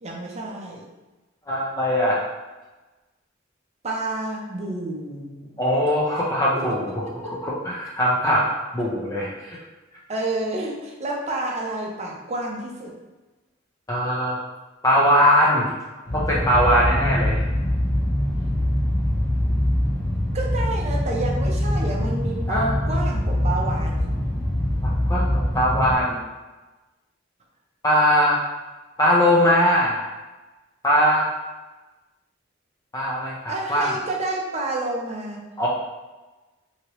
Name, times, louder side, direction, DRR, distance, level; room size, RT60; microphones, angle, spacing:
voice 1, 0.0-0.8 3.8-5.6 6.5-6.6 7.2-7.3 9.5-9.6 10.1-12.9 20.3-24.1 33.5-35.4, right 2 dB, 35° right, -1 dB, 0.6 m, -30 dB
voice 2, 1.5-2.2 5.6-8.5 8.7-9.6 13.9-14.4 14.8-15.7 16.1-17.4 22.5-22.7 24.8-25.3 25.5-26.2 27.8-28.4 29.0-30.0 30.8-31.3 32.9-33.9 35.6-35.7, equal, 15° left, -5 dB, 0.5 m, -20 dB
sound 1, 16.1-25.9, left 1 dB, 40° left, 0.9 m, -23 dB
2.9 x 2.8 x 2.9 m, 1.2 s
head